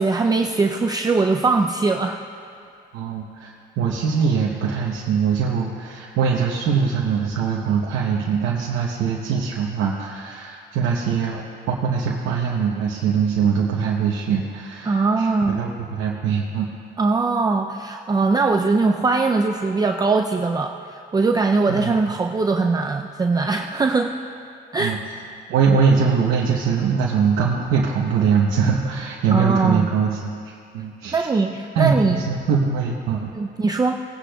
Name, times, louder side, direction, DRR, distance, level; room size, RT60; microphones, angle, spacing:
voice 1, 0.0-2.2 14.9-15.6 17.0-24.2 24.7-25.0 29.3-29.9 31.1-32.2 33.4-33.9, right 3 dB, 20° right, 3 dB, 0.4 m, -21 dB
voice 2, 2.9-3.5 3.8-16.7 21.7-21.9 24.8-25.0 25.5-31.3 31.7-33.3, right 6 dB, 90° right, -2 dB, 0.9 m, -22 dB
18.5 x 10.0 x 2.3 m, 2.4 s
cardioid pair, 90°, 20 cm